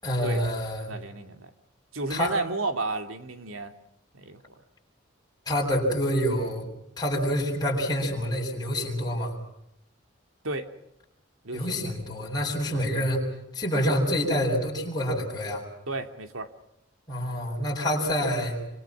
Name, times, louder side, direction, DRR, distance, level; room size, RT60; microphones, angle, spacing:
voice 1, 0.0-0.9 2.1-2.4 5.5-6.7 7.0-9.3 11.5-13.3 13.5-15.6 17.1-18.6, equal, 20° left, -2 dB, 7.8 m, -27 dB
voice 2, 0.7-1.5 1.9-3.7 4.1-4.4 10.4-10.7 11.4-11.9 12.7-12.8 15.9-16.5, right 3 dB, 85° right, 7 dB, 2.7 m, -32 dB
27.5 x 26.0 x 6.1 m, 0.83 s
head